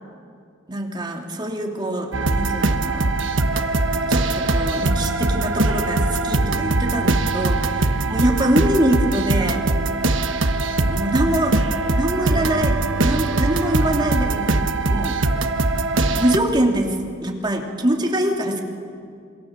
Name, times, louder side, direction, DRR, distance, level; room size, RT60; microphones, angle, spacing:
voice 1, 0.7-3.1 3.9-9.7 10.9-11.6 11.9-14.6 14.9-15.2 16.2-18.6, right 1 dB, 25° right, 1 dB, 3.0 m, -24 dB
sound 1, 2.1-16.4, right 2 dB, 75° right, 1.3 m, -21 dB
27.5 x 24.5 x 7.5 m, 2.3 s
head